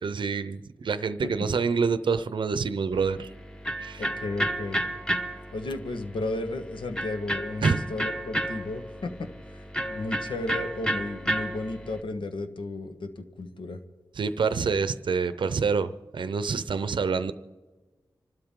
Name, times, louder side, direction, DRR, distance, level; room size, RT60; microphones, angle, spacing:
voice 1, 0.0-3.3 3.8-4.1 7.6-7.8 14.2-17.3, right 5 dB, 75° right, 12 dB, 0.6 m, -27 dB
Electric guitar, 2.9-12.0, right 1 dB, 10° left, 1.1 m, -32 dB
voice 2, 4.0-4.8 5.5-9.3 9.9-13.8, left 2 dB, 75° left, 7 dB, 1.3 m, -33 dB
26.5 x 12.5 x 3.7 m, 1.3 s
wide cardioid pair, 70°, 8 cm